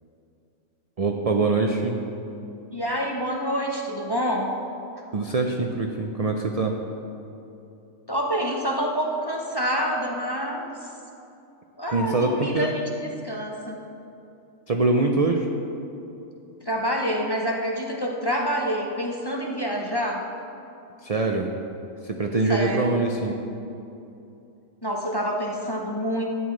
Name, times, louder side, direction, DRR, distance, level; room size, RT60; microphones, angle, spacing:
voice 1, 1.0-2.0 5.1-6.8 11.9-12.8 14.7-15.5 21.0-21.5 22.0-23.4, right 3 dB, 70° right, 3 dB, 0.3 m, -23 dB
voice 2, 2.7-4.5 8.1-10.9 11.8-12.8 13.2-13.8 16.6-20.2 22.5-22.9 24.8-26.3, equal, 25° left, -1 dB, 0.5 m, -27 dB
12.5 x 9.3 x 3.2 m, 2.8 s
omnidirectional pair, 1.4 m